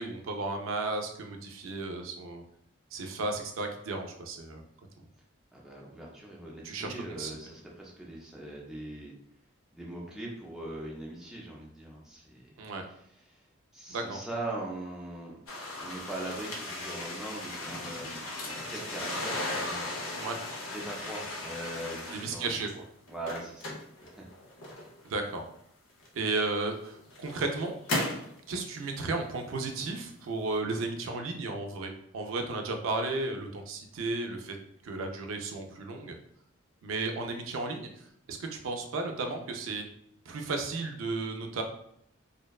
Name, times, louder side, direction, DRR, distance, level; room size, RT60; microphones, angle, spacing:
voice 1, 0.0-2.4 2.9-4.6 5.0-5.1 6.6-7.3 12.6-12.8 13.9-14.2 20.1-20.4 22.1-22.7 25.0-25.4 26.1-27.8 28.5-34.6 34.8-36.1 36.8-39.8 40.3-41.6, right 3 dB, 75° right, 4 dB, 0.4 m, -34 dB
voice 2, 5.5-9.1 9.7-12.6 12.9-13.0 13.3-13.4 13.7-15.4 15.8-20.1 20.7-22.5 23.1-23.7 24.0-24.1, right 1 dB, ahead, -4 dB, 0.4 m, -41 dB
sound 1, 15.5-22.7 23.1-25.1 26.0-26.1 26.8-28.3, left 2 dB, 80° left, 0.6 m, -36 dB
2.6 x 2.1 x 2.3 m, 0.71 s
head